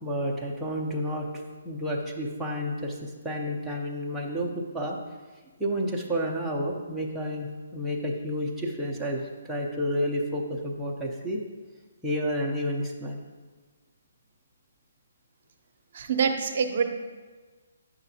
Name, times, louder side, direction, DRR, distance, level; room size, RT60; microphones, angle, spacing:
voice 1, 0.0-5.0 5.6-7.5 7.7-11.4 12.0-13.2, equal, 5° right, -4 dB, 0.6 m, -30 dB
voice 2, 15.9-16.8, right 6 dB, 45° right, 5 dB, 0.7 m, -25 dB
8.7 x 5.8 x 2.8 m, 1.4 s
hypercardioid pair, 160°, 0 cm